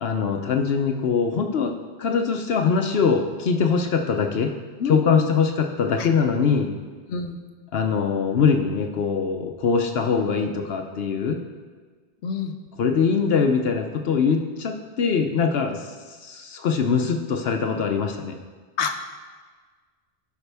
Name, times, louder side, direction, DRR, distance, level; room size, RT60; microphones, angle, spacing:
voice 1, 0.0-4.5 4.9-6.7 7.7-11.4 12.8-18.4, left 5 dB, 70° left, 4 dB, 0.9 m, -22 dB
voice 2, 4.8-5.3 6.0-6.1 7.1-7.4 12.2-12.6 18.8-19.0, left 5 dB, 90° left, 7 dB, 1.0 m, -27 dB
14.0 x 5.8 x 3.4 m, 1.5 s
omnidirectional pair, 1.1 m